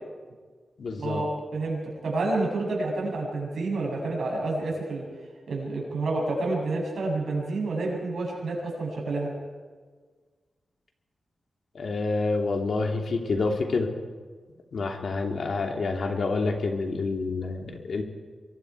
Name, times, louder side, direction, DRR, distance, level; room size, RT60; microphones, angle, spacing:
voice 1, 0.8-1.2 11.7-13.9 14.7-18.0, left 3 dB, 65° left, 2 dB, 3.0 m, -28 dB
voice 2, 1.5-5.0 5.5-9.3, right 2 dB, 80° right, -2 dB, 7.4 m, -29 dB
25.5 x 22.5 x 4.8 m, 1.5 s
wide cardioid pair, 90°, 0 cm